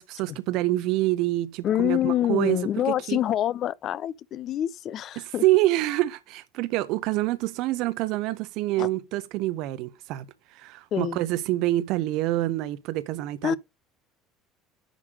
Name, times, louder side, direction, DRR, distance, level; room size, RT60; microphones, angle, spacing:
voice 1, 0.1-2.6 2.9-3.2 5.2-10.2 10.5-13.6, right 17 dB, 55° right, 1.0 m, -26 dB
voice 2, 1.6-5.4 8.8-8.9 10.9-11.2 13.4-13.6, left 11 dB, 45° left, 0.6 m, -26 dB
10.5 x 3.6 x 6.5 m
figure-of-eight pair, 60°, 0 cm